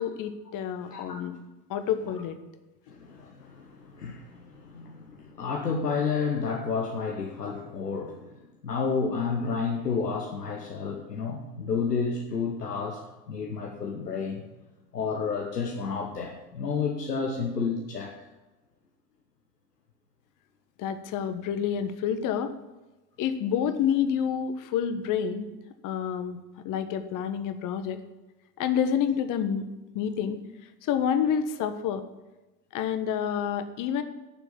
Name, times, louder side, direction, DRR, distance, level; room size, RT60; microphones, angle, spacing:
voice 1, 0.0-1.4 1.7-2.4 20.8-22.5 23.2-25.5 25.8-26.4 26.6-28.0 28.6-29.6 29.9-30.4 30.8-32.0 32.7-34.0, left 8 dB, 40° left, 10 dB, 1.3 m, -28 dB
voice 2, 2.9-13.0 13.3-14.4 14.9-18.1, left 5 dB, 80° left, 1 dB, 1.3 m, -31 dB
10.0 x 7.1 x 8.5 m, 1.1 s
figure-of-eight pair, 70°, 48 cm